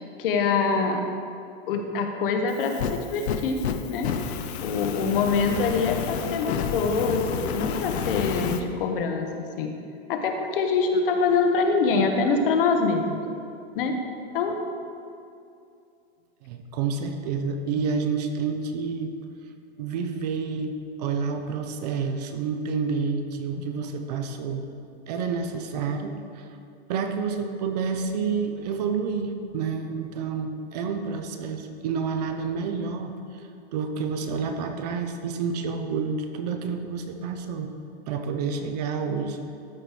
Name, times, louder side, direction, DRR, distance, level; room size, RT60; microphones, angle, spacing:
voice 1, 0.2-1.1 1.7-3.6 3.9-4.1 4.6-9.7 10.1-13.2 13.8-14.0 14.3-14.6 23.5-23.7, left 4 dB, 55° left, 4 dB, 1.0 m, -24 dB
Fire, 2.5-8.6, left 7 dB, 80° left, 0.7 m, -30 dB
voice 2, 16.4-19.1 19.8-24.7 25.1-26.5 26.9-37.7 38.1-39.4, right 5 dB, 40° right, 6 dB, 0.6 m, -29 dB
13.0 x 4.5 x 4.9 m, 2.5 s
supercardioid pair, 175°, 32 cm